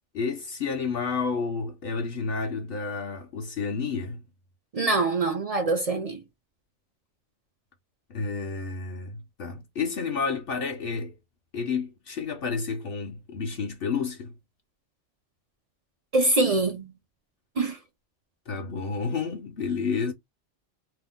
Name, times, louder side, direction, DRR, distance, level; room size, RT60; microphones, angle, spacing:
voice 1, 0.1-4.2 8.1-11.1 11.5-14.3 18.5-20.1, left 5 dB, 60° left, 0.8 m, -30 dB
voice 2, 4.7-6.2 16.1-16.9 17.6-17.8, right 2 dB, 50° right, 0.4 m, -24 dB
2.8 x 2.0 x 3.5 m
omnidirectional pair, 1.2 m